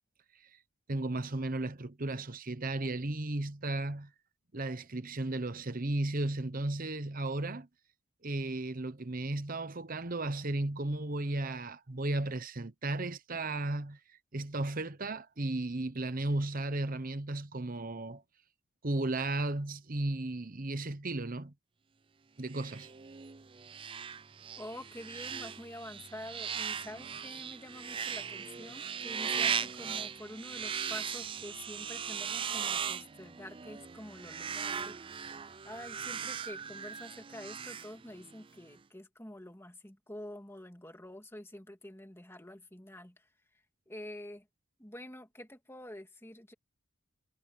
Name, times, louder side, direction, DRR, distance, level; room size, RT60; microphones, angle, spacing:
voice 1, 0.9-4.1 4.5-7.7 8.2-18.2 18.8-21.5 22.4-22.9, right 2 dB, 40° right, 1.0 m, -35 dB
sound 1, 22.5-38.4, right 7 dB, 25° right, 0.4 m, -38 dB
voice 2, 24.6-43.3 43.9-44.5 44.8-46.5, left 1 dB, 10° left, 2.5 m, -47 dB
head